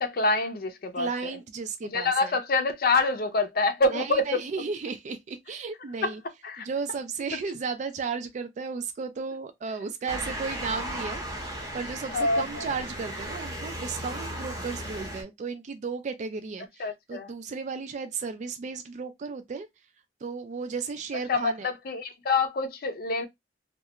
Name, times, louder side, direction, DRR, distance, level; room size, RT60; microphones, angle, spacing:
voice 1, 0.0-1.3 1.8-4.2 6.0-6.1 6.4-6.7 12.1-12.7 16.8-17.3 21.3-23.3, left 3 dB, 55° left, 0.5 m, -26 dB
voice 2, 1.0-2.4 3.9-6.2 6.6-11.2 11.7-19.7 20.2-21.7, right 5 dB, 45° right, 0.3 m, -34 dB
Motor vehicle (road) / Siren, 10.1-15.2, right 1 dB, 20° right, 0.7 m, -36 dB
2.3 x 2.1 x 2.8 m
head